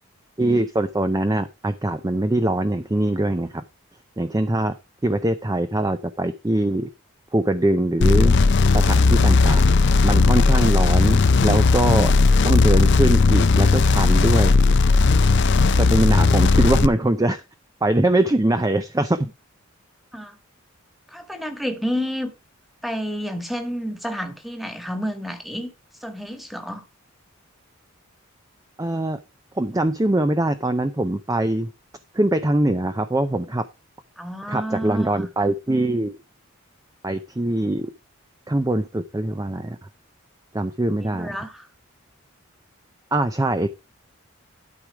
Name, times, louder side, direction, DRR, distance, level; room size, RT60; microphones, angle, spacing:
voice 1, 0.4-3.6 4.2-4.7 5.0-6.9 7.3-8.4 8.7-12.1 12.4-14.5 15.7-17.4 17.8-19.3 28.8-29.2 29.6-31.7 32.1-33.6 34.5-36.2 37.0-37.9 38.5-39.8 40.5-41.4 43.1-43.7, right 1 dB, 15° right, 0.5 m, -22 dB
sound 1, 8.0-16.9, left 4 dB, 55° left, 0.5 m, -16 dB
voice 2, 21.1-22.3 22.8-25.7 26.0-26.8 34.2-35.3 41.1-41.7, equal, ahead, 1.5 m, -30 dB
12.0 x 4.8 x 4.8 m
head